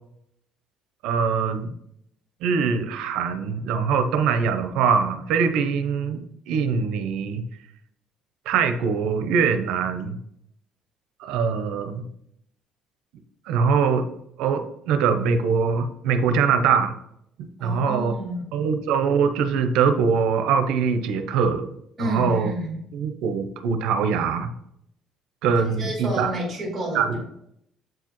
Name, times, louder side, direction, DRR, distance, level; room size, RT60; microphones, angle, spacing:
voice 1, 1.0-1.7 2.4-7.5 8.5-10.2 11.2-12.0 13.5-14.1 14.4-17.0 17.4-18.1 18.5-21.7 22.0-22.5 22.9-24.5 25.4-26.3 26.9-27.2, right 6 dB, 80° right, 9 dB, 0.6 m, -23 dB
voice 2, 17.6-18.5 22.0-22.8 25.6-27.0, right 1 dB, 20° right, -3 dB, 2.3 m, -30 dB
7.7 x 4.8 x 3.0 m, 0.75 s
cardioid pair, 165°, 0 cm